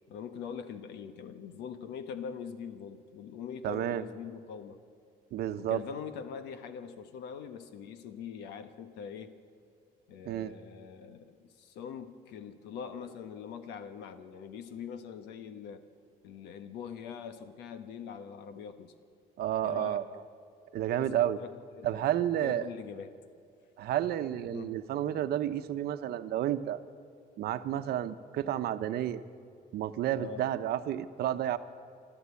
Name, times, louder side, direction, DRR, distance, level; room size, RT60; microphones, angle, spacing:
voice 1, 0.0-4.8 5.6-9.3 10.1-15.8 16.2-18.9 19.6-20.0 20.6-22.1 22.4-23.1 24.5-24.8 30.2-30.5, left 7 dB, 85° left, 10 dB, 1.3 m, -43 dB
voice 2, 3.6-4.1 5.3-5.8 10.2-10.5 19.4-20.0 20.7-21.4 21.8-22.7 23.8-26.8 27.4-29.2 29.7-31.6, right 11 dB, 70° right, 10 dB, 0.9 m, -31 dB
26.5 x 13.5 x 8.4 m, 2.4 s
cardioid pair, 110°, 17 cm